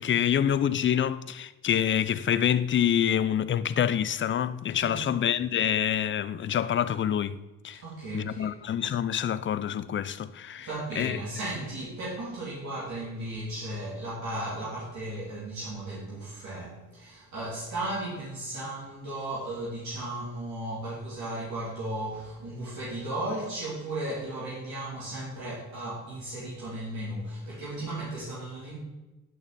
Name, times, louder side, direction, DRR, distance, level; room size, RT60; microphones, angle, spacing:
voice 1, 0.0-7.4 7.6-7.8 8.1-10.7 11.0-11.2, left 9 dB, 40° left, 0.5 m, -26 dB
voice 2, 7.8-8.5 10.6-28.8, right 1 dB, 65° right, 3.2 m, -35 dB
10.5 x 6.4 x 4.1 m
cardioid pair, 90°, 30 cm